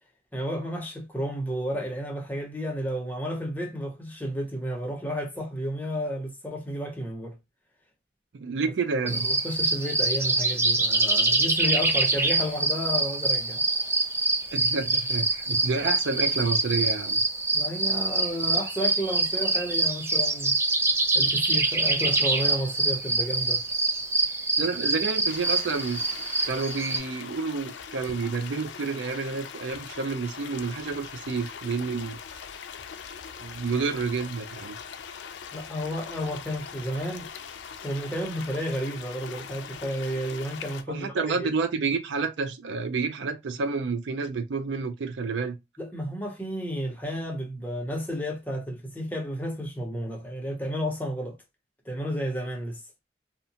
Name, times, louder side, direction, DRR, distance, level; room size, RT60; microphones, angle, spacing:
voice 1, 0.3-7.4 9.0-13.6 17.5-20.6 21.1-23.6 35.5-37.3 37.8-41.5 45.8-51.3 51.9-52.8, equal, 10° left, 0.7 m, -32 dB
voice 2, 8.3-9.3 14.5-17.2 24.6-26.0 26.4-32.2 33.4-34.8 40.9-45.5, right 4 dB, 85° right, 0.4 m, -29 dB
sound 1, 9.1-27.0, right 2 dB, 15° right, 0.3 m, -25 dB
sound 2, 25.3-40.8, left 7 dB, 80° left, 0.4 m, -41 dB
2.7 x 2.1 x 2.7 m
head